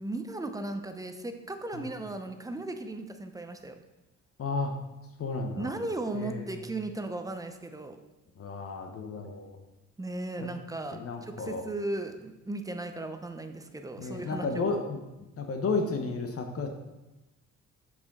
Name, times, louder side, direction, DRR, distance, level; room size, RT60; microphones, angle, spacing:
voice 1, 0.0-3.8 5.6-8.0 10.0-14.6, right 2 dB, 10° right, 7 dB, 0.6 m, -36 dB
voice 2, 4.4-4.7 5.2-5.7 6.1-6.5 8.4-9.6 10.9-11.6 14.0-15.0 15.4-16.7, left 3 dB, 50° left, 4 dB, 0.9 m, -32 dB
6.7 x 5.1 x 3.7 m, 1.0 s
cardioid pair, 90°, 30 cm